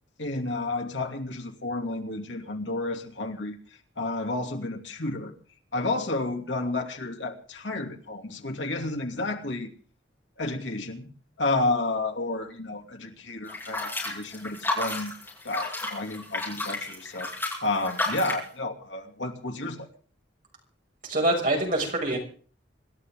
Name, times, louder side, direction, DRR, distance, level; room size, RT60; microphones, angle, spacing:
voice 1, 0.2-3.6 4.0-5.3 5.7-9.7 10.4-11.1 11.4-15.1 15.4-17.3 17.6-19.9, left 2 dB, 80° left, 3 dB, 2.7 m, -31 dB
sound 1, 13.5-18.5, left 2 dB, 10° left, 6.8 m, -32 dB
voice 2, 21.0-22.2, right 1 dB, 45° right, 0 dB, 6.4 m, -25 dB
26.5 x 13.0 x 3.8 m, 0.41 s
head